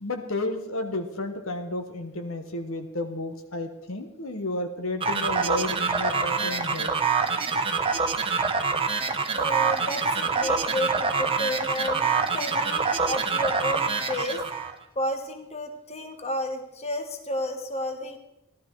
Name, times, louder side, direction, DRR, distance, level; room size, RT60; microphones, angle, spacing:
voice 1, 0.0-6.9, left 2 dB, 65° left, 6 dB, 1.2 m, -32 dB
sound 1, 5.0-14.7, right 4 dB, 25° right, 1.0 m, -26 dB
voice 2, 9.3-14.4 14.9-18.2, left 1 dB, 30° left, 6 dB, 1.3 m, -31 dB
15.0 x 12.0 x 4.7 m, 0.85 s
head